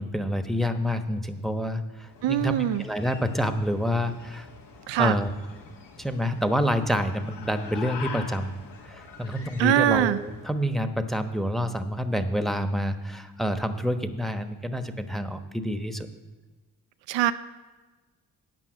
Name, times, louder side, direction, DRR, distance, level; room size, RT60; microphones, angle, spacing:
voice 1, 0.0-4.5 5.0-5.3 6.0-8.6 8.9-16.1, equal, ahead, 8 dB, 1.0 m, -28 dB
sound 1, 2.0-10.6, left 5 dB, 60° left, 1.5 m, -44 dB
voice 2, 2.2-2.8 4.9-5.1 9.6-10.2 17.1-17.3, right 13 dB, 70° right, 12 dB, 0.5 m, -22 dB
9.3 x 5.6 x 7.9 m, 1.3 s
hypercardioid pair, 45°, 45 cm